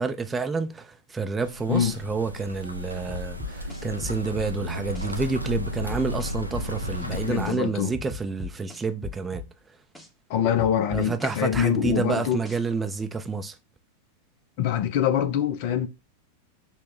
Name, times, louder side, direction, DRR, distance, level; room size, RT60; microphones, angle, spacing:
voice 1, 0.0-9.4 10.9-13.6, right 4 dB, 15° right, 0.5 m, -29 dB
sound 1, 1.4-7.5, left 1 dB, 85° right, 0.5 m, -33 dB
sound 2, 3.1-4.5 4.9-5.1 5.6-7.0 7.4-7.6 7.9-9.5 9.9-10.1 10.6-12.0 12.4-12.6, left 3 dB, 5° left, 0.9 m, -38 dB
voice 2, 7.0-7.9 10.3-12.4 14.6-15.9, left 9 dB, 45° left, 0.5 m, -24 dB
5.5 x 2.1 x 3.8 m
figure-of-eight pair, 90°, 0 cm